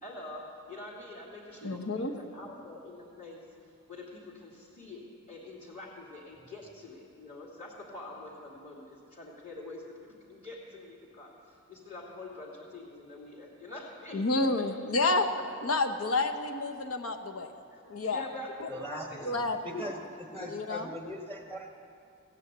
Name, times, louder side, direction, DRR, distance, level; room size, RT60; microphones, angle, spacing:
voice 1, 0.0-14.7 17.7-19.3 19.7-19.9, left 2 dB, 35° left, -8 dB, 2.8 m, -46 dB
voice 2, 1.6-2.1 14.1-15.2 15.6-17.5 17.9-18.3 18.6-18.7 19.2-19.7 20.5-20.9, left 2 dB, 70° left, 6 dB, 1.0 m, -29 dB
voice 3, 18.7-19.9 20.3-21.7, equal, 10° left, 1 dB, 1.2 m, -40 dB
16.0 x 9.7 x 8.2 m, 2.6 s
head